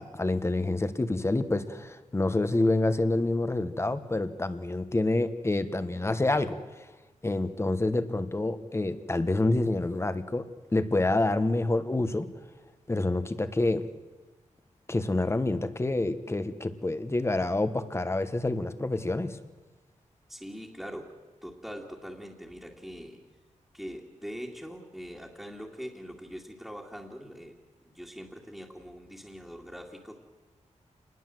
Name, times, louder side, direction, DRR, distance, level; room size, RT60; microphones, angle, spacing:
voice 1, 0.0-6.8 7.2-10.4 10.7-12.3 12.9-13.8 14.9-19.4, left 2 dB, 20° left, 11 dB, 1.3 m, -27 dB
voice 2, 20.3-21.2 21.4-23.2 23.7-27.6 27.8-30.2, equal, ahead, -3 dB, 2.3 m, -42 dB
27.5 x 20.5 x 7.8 m, 1.2 s
wide cardioid pair, 135°, 13 cm